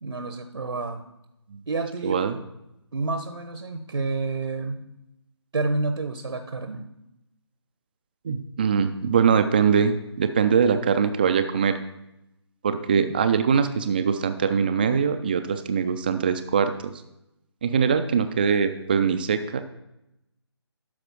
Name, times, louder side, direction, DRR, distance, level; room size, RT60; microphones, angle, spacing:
voice 1, 0.0-1.0 1.7-2.2 2.9-4.8 5.5-6.9, right 3 dB, 70° right, 8 dB, 0.9 m, -29 dB
voice 2, 2.0-2.4 8.2-11.8 12.6-16.9 17.6-19.6, right 6 dB, 20° right, 9 dB, 0.3 m, -22 dB
12.0 x 4.8 x 6.1 m, 0.89 s
figure-of-eight pair, 150°, 15 cm